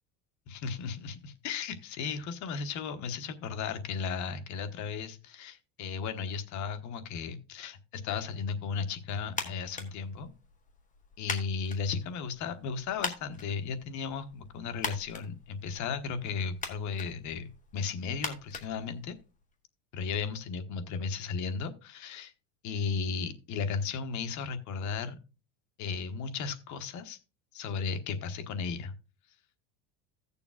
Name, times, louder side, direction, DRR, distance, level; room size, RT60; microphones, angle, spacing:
voice 1, 0.5-10.3 11.2-19.1 19.9-22.3 22.6-25.2 25.8-27.2 27.5-28.9, left 5 dB, 50° left, 9 dB, 1.2 m, -35 dB
sound 1, 9.3-19.5, left 4 dB, 20° left, 1.5 m, -42 dB
16.5 x 6.9 x 2.4 m, 0.32 s
cardioid pair, 130°, 36 cm